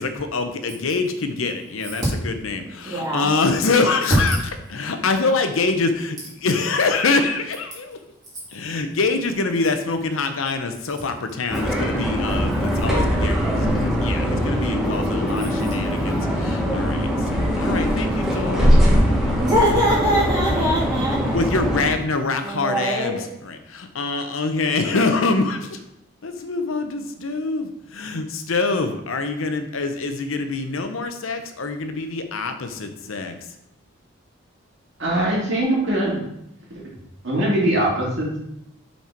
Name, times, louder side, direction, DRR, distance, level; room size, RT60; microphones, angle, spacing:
voice 1, 0.0-4.4 4.7-8.0 8.5-18.7 21.3-25.8 26.2-33.4, left 3 dB, 85° left, 7 dB, 0.7 m, -25 dB
voice 2, 2.8-3.3 19.4-21.4 22.4-23.2, equal, 20° right, -8 dB, 2.6 m, -22 dB
sound 1, 11.5-21.9, equal, ahead, 1.1 m, -21 dB
voice 3, 35.0-36.2 36.7-36.8 37.2-38.4, right 1 dB, 60° right, -4 dB, 2.1 m, -21 dB
5.8 x 4.3 x 4.5 m, 0.81 s
head